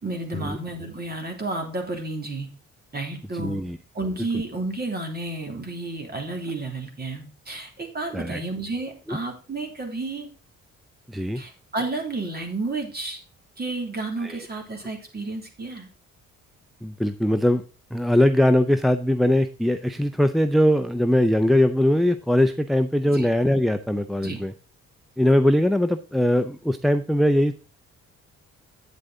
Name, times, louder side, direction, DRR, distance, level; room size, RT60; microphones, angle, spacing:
voice 1, 0.0-2.5 2.9-3.6 3.9-10.3 11.3-13.2 13.6-15.9 23.1-23.3 24.2-24.4, right 2 dB, 30° right, 4 dB, 3.2 m, -31 dB
voice 2, 3.3-3.8 8.1-8.4 9.1-9.2 11.1-11.4 14.2-14.4 16.8-17.6 17.9-24.5 25.2-27.6, left 1 dB, ahead, 8 dB, 0.6 m, -21 dB
9.1 x 7.8 x 3.9 m, 0.35 s
cardioid pair, 90°, 30 cm